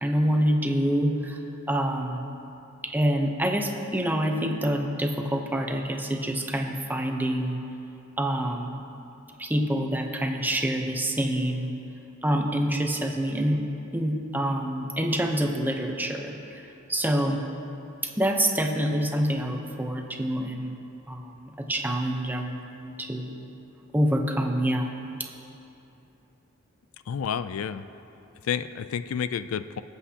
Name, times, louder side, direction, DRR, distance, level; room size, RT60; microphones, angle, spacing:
voice 1, 0.0-1.4 1.7-2.3 2.8-7.6 8.2-8.8 9.4-11.8 12.2-13.6 13.9-16.6 16.9-17.4 18.0-20.8 21.1-23.5 23.9-25.0, equal, 10° right, 3 dB, 0.7 m, -26 dB
voice 2, 27.1-27.9 28.4-29.8, left 7 dB, 80° left, 13 dB, 0.4 m, -30 dB
23.5 x 8.0 x 2.8 m, 2.8 s
head